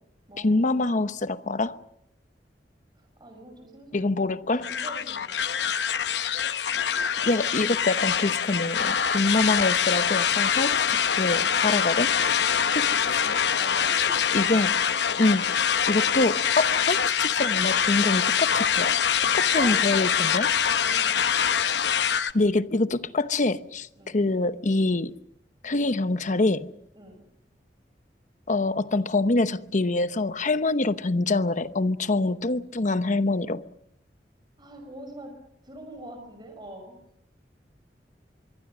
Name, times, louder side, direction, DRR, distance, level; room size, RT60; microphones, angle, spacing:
voice 1, 0.4-1.8 3.9-4.7 7.2-12.1 12.7-13.2 14.3-14.8 15.2-15.5 15.9-19.0 19.3-20.5 22.3-25.1 25.6-26.8 28.5-33.7, left 2 dB, 45° left, 0.9 m, -25 dB
voice 2, 3.0-4.3 4.6-5.6 10.8-11.0 12.4-12.8 13.6-14.1 15.3-15.5 19.5-19.9 20.8-21.3 23.9-24.2 26.9-27.2 34.6-35.3 35.6-37.0, right 1 dB, 25° right, 5.6 m, -44 dB
sound 1, 4.6-22.3, left 8 dB, 70° left, 0.8 m, -24 dB
25.0 x 23.0 x 6.2 m
head